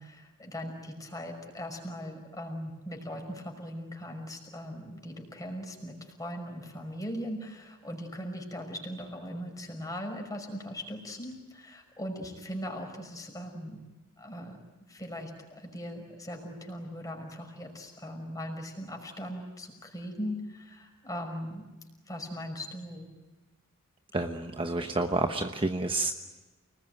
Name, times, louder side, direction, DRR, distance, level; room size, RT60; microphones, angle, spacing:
voice 1, 0.0-13.8 14.2-14.6 14.9-21.7 22.1-23.1, equal, 15° left, 2 dB, 5.5 m, -39 dB
voice 2, 24.1-26.1, right 2 dB, 25° right, 5 dB, 1.1 m, -29 dB
29.5 x 20.0 x 9.2 m, 1.2 s
head